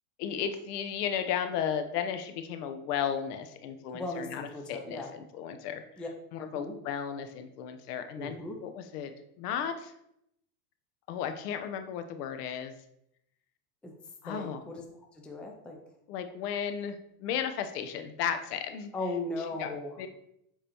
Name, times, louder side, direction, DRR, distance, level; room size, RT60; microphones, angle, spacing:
voice 1, 0.2-9.1 9.4-9.9 11.1-12.7 14.2-14.6 16.1-18.9 19.6-20.1, left 8 dB, 80° left, 8 dB, 0.9 m, -34 dB
voice 2, 3.9-5.1 6.0-6.1 6.5-6.7 8.2-8.6 13.8-14.0 14.3-14.8 15.1-15.8 18.9-19.9, left 2 dB, ahead, 1 dB, 0.4 m, -37 dB
7.2 x 4.9 x 2.9 m, 0.77 s
supercardioid pair, 140°, 46 cm